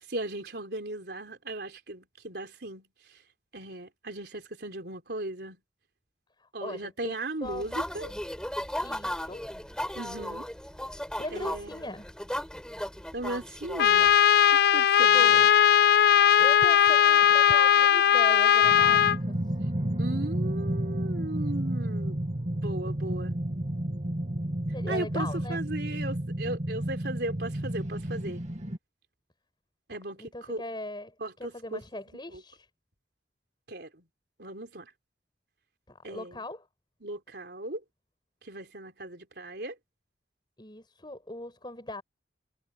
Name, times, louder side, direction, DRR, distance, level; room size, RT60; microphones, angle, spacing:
voice 1, 0.1-3.2 3.5-5.6 6.5-8.1 9.9-10.5 11.3-11.9 13.1-14.2 14.5-15.5 20.0-22.2 22.6-23.3 24.9-28.4 29.9-30.6 31.2-31.8 32.3-32.4 33.7-34.0 34.4-34.9 36.0-36.5 37.0-37.8 38.4-39.8, right 2 dB, 60° right, 4.1 m, -37 dB
voice 2, 6.4-7.1 7.4-7.7 8.8-9.5 11.2-12.1 14.9-15.5 16.4-19.4 24.7-25.6 30.2-31.1 31.4-32.7 35.9-36.7 40.6-42.0, left 1 dB, 25° left, 5.7 m, -39 dB
sound 1, 7.4-14.2, left 1 dB, 5° left, 5.7 m, -36 dB
Trumpet, 13.8-19.2, left 9 dB, 60° left, 0.4 m, -19 dB
sound 2, 18.6-28.8, right 1 dB, 40° right, 2.4 m, -31 dB
head